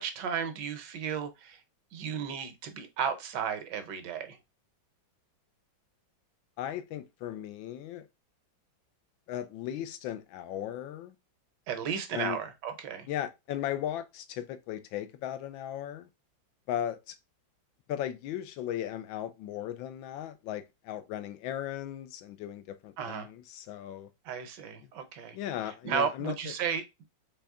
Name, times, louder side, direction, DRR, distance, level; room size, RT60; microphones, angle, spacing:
voice 1, 0.0-1.6 1.9-4.4 11.7-13.1 23.0-23.3 24.2-25.4 25.8-26.8, right 7 dB, 70° right, 1.3 m, -34 dB
voice 2, 6.6-8.1 9.3-11.1 12.1-12.4 13.1-16.1 16.7-17.2 17.9-24.1 25.3-26.5, left 11 dB, 80° left, 1.4 m, -37 dB
4.1 x 3.3 x 3.5 m
omnidirectional pair, 2.1 m